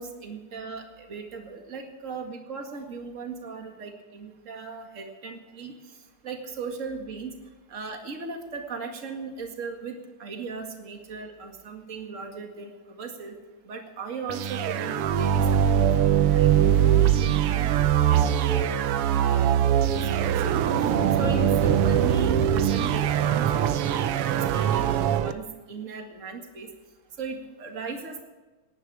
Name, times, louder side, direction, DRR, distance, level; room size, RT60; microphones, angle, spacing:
voice 1, 0.0-5.7 6.2-7.3 7.7-13.3 13.6-17.7 18.1-18.7 19.1-19.6 20.0-20.1 20.3-20.6 21.2-26.7 27.2-28.2, right 4 dB, 30° right, 3 dB, 1.9 m, -37 dB
sound 1, 14.3-25.3, right 9 dB, 75° right, 1.3 m, -22 dB
17.5 x 11.5 x 4.8 m, 1.2 s
omnidirectional pair, 3.3 m